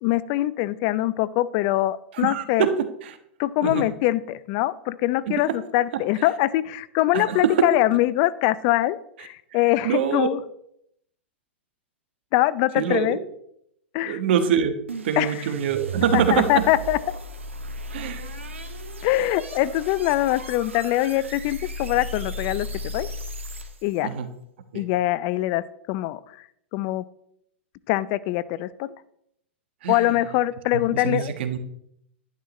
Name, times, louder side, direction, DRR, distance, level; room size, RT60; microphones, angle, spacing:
voice 1, 0.0-2.7 3.4-10.4 12.3-13.2 13.9-14.2 15.2-15.4 16.1-17.0 19.0-22.7 22.9-23.1 23.8-24.1 24.7-26.2 26.7-27.0 27.9-28.9 29.9-31.3, left 15 dB, 45° left, 18 dB, 0.6 m, -23 dB
voice 2, 2.1-2.7 3.0-3.2 3.6-3.9 5.3-5.4 5.9-6.0 7.1-7.6 9.8-10.3 12.8-13.2 14.1-14.7 15.0-16.6 17.9-18.3 24.0-24.3 24.7-24.8 29.8-30.1 30.9-31.6, right 8 dB, 60° right, 8 dB, 1.3 m, -24 dB
sound 1, 14.9-24.0, equal, 85° right, 1.4 m, -35 dB
11.5 x 11.0 x 3.2 m, 0.74 s
hypercardioid pair, 110°, 7 cm